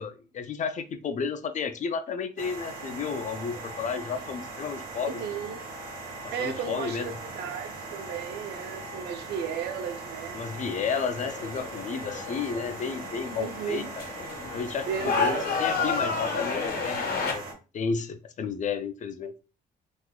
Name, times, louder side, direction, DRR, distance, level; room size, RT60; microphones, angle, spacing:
voice 1, 0.0-5.1 6.4-7.1 10.3-14.0 14.5-17.5 17.7-19.3, left 6 dB, 50° left, 0.5 m, -32 dB
sound 1, 2.4-17.5, right 2 dB, 65° right, 1.3 m, -40 dB
voice 2, 5.0-5.6 6.3-10.4 13.3-13.9 14.9-15.7, right 8 dB, 85° right, 0.6 m, -35 dB
sound 2, 11.1-17.3, left 5 dB, 70° left, 1.2 m, -31 dB
3.6 x 3.0 x 2.3 m
cardioid pair, 90°, 16 cm